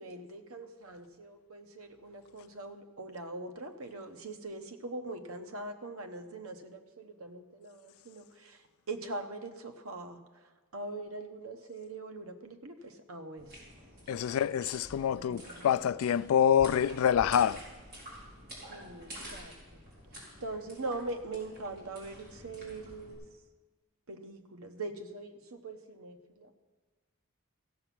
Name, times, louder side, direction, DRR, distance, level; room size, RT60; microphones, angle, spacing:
voice 1, 0.0-13.6 14.1-14.2 15.1-15.7 18.7-19.8 20.1-23.2 24.1-26.5, right 2 dB, 90° right, 1.0 m, -42 dB
sound 1, 13.4-23.1, equal, 50° right, 4.1 m, -48 dB
voice 2, 14.1-17.6, left 8 dB, 80° left, 0.3 m, -26 dB
15.0 x 7.1 x 6.0 m
head